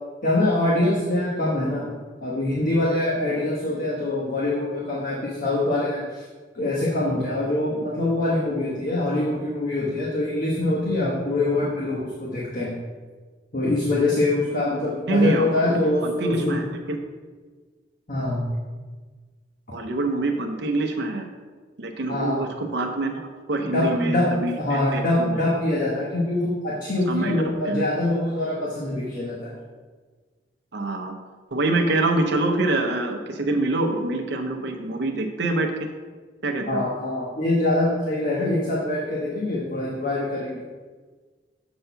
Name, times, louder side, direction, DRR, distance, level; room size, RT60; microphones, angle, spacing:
voice 1, 0.2-1.9 2.2-6.2 6.5-12.7 13.5-16.6 18.1-18.4 22.1-22.4 23.6-24.3 24.6-29.5 36.7-40.6, left 2 dB, 50° left, -5 dB, 1.3 m, -24 dB
voice 2, 15.1-17.0 19.7-21.3 21.8-25.4 27.1-27.4 27.7-27.8 30.7-31.1 31.5-35.9 36.4-36.8, right 2 dB, 70° right, 4 dB, 0.7 m, -25 dB
7.8 x 4.2 x 5.6 m, 1.4 s
head